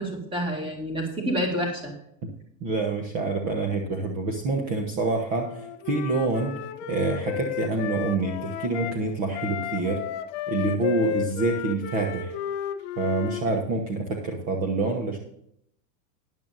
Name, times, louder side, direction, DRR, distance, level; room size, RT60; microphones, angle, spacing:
voice 1, 0.0-1.9, equal, 10° right, 1 dB, 2.1 m, -28 dB
voice 2, 2.6-6.6 6.9-10.0 10.5-12.3 13.0-15.2, right 3 dB, 35° right, 2 dB, 1.3 m, -27 dB
Wind instrument woodwind instrument, 5.4-9.0 9.3-13.5, left 9 dB, 40° left, 0.9 m, -33 dB
13.5 x 10.5 x 2.7 m, 0.74 s
supercardioid pair, 180°, 50 cm